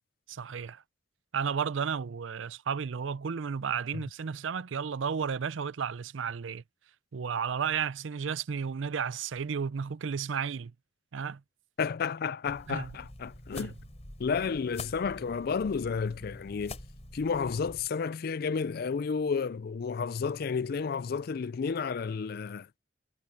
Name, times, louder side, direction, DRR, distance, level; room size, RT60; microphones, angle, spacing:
voice 1, 0.3-0.8 1.3-6.6 7.1-10.7 11.1-11.4 12.7-12.9 13.5-13.7, right 6 dB, 80° right, 0.5 m, -33 dB
voice 2, 11.8-13.7 14.2-16.8 17.1-22.7, left 5 dB, 55° left, 0.4 m, -31 dB
sound 1, 12.5-17.9, left 2 dB, 35° left, 3.9 m, -46 dB
head